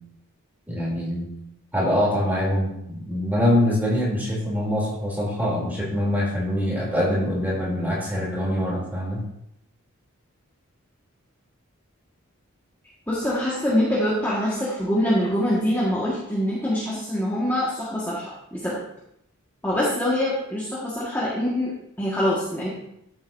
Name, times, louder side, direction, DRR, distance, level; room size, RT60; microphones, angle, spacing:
voice 1, 0.7-1.3 1.7-9.2, left 1 dB, 10° right, -5 dB, 3.0 m, -24 dB
voice 2, 13.1-18.8 19.6-22.7, left 1 dB, 10° left, -8 dB, 1.6 m, -24 dB
13.0 x 7.7 x 2.7 m, 0.78 s
head